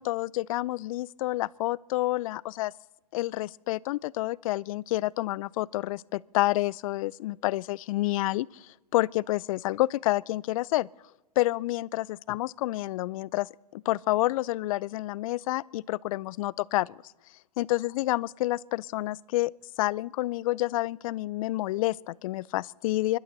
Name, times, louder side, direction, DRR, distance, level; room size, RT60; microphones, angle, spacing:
voice 1, 0.0-2.7 3.1-10.9 11.4-17.0 17.6-19.5 19.8-23.2, left 17 dB, 60° left, 0.4 m, -29 dB
28.0 x 12.0 x 4.0 m
hypercardioid pair, 120°, 20 cm